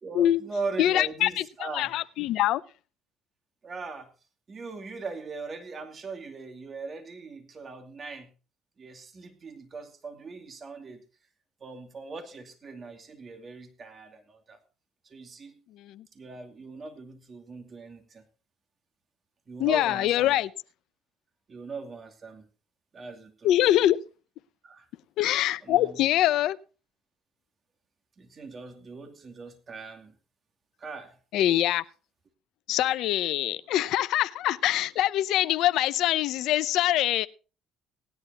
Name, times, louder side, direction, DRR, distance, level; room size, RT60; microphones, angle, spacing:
voice 1, 0.0-1.9 3.6-4.1 4.5-8.3 8.8-11.0 11.6-14.6 15.0-15.6 16.1-18.2 19.5-20.4 21.5-22.5 22.9-23.5 24.6-24.9 25.6-26.0 28.2-30.1 30.8-31.2, right 3 dB, 40° right, 2.6 m, -40 dB
voice 2, 0.8-1.4 1.7-2.6 15.8-16.0 19.6-20.5 23.4-24.0 25.2-26.6 31.3-31.8 32.7-37.3, left 13 dB, 70° left, 0.6 m, -24 dB
18.5 x 10.5 x 2.9 m
supercardioid pair, 75°, 0 cm